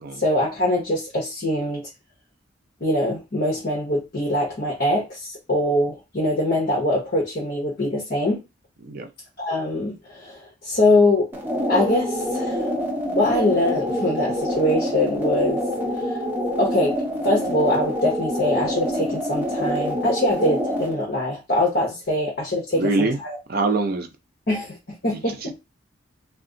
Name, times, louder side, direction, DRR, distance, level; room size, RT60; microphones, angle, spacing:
voice 1, 0.1-1.8 2.8-8.4 9.4-11.3 11.7-12.6 13.1-15.6 15.9-16.2 16.6-17.0 17.2-23.4 24.5-25.5, left 1 dB, 50° left, -2 dB, 0.9 m, -23 dB
sound 1, 11.3-20.9, equal, 10° right, 0.8 m, -26 dB
voice 2, 22.7-23.2 23.5-24.1 25.1-25.6, right 3 dB, 50° right, 6 dB, 0.6 m, -24 dB
2.5 x 2.4 x 3.8 m, 0.26 s
head